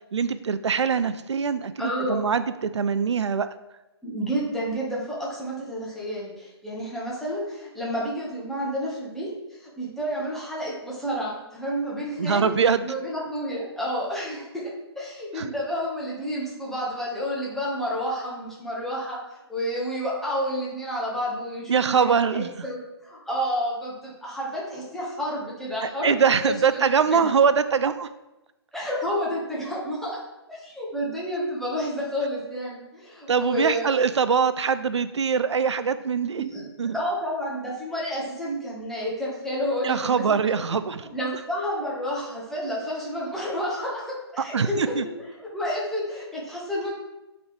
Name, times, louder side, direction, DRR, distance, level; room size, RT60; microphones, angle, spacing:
voice 1, 0.1-3.5 12.2-12.9 15.4-15.5 21.7-22.5 25.8-28.1 33.3-36.4 36.8-37.0 39.8-41.1 44.5-45.1, right 6 dB, 90° right, 12 dB, 0.4 m, -23 dB
voice 2, 1.8-2.3 4.0-12.5 12.8-19.2 19.5-27.3 28.7-30.2 30.5-34.0 36.4-40.2 41.1-46.9, equal, ahead, -6 dB, 1.3 m, -30 dB
7.1 x 4.0 x 3.3 m, 1.0 s
hypercardioid pair, 145°, 14 cm